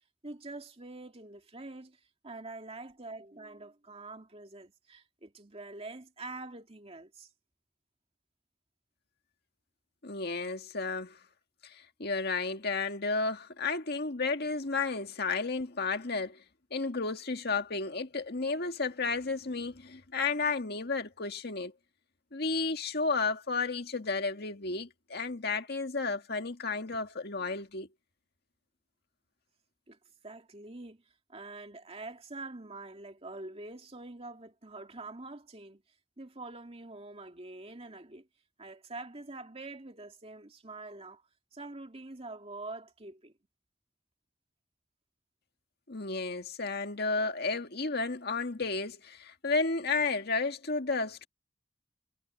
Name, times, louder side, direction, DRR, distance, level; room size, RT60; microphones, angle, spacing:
voice 1, 0.2-7.3 29.9-30.0 30.2-31.0 31.3-35.8 36.2-38.3 38.6-41.2 41.5-43.3, right 2 dB, 35° right, 2.4 m, -45 dB
voice 2, 10.0-11.2 11.6-16.4 16.7-21.7 22.3-27.9 45.9-51.3, left 4 dB, 60° left, 1.9 m, -32 dB
head